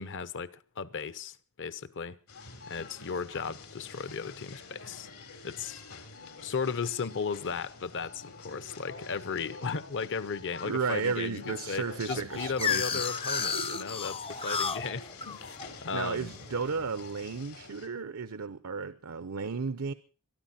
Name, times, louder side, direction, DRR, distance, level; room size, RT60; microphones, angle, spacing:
voice 1, 0.0-2.2 2.7-5.1 5.4-5.8 6.4-15.5 15.8-16.3, left 5 dB, 60° left, 0.9 m, -36 dB
sound 1, 2.3-17.9, left 4 dB, 80° left, 3.6 m, -47 dB
voice 2, 10.6-13.0 15.9-19.9, right 5 dB, 85° right, 0.8 m, -33 dB
sound 2, 12.1-16.9, left 5 dB, 25° left, 0.6 m, -33 dB
23.0 x 12.5 x 4.2 m
head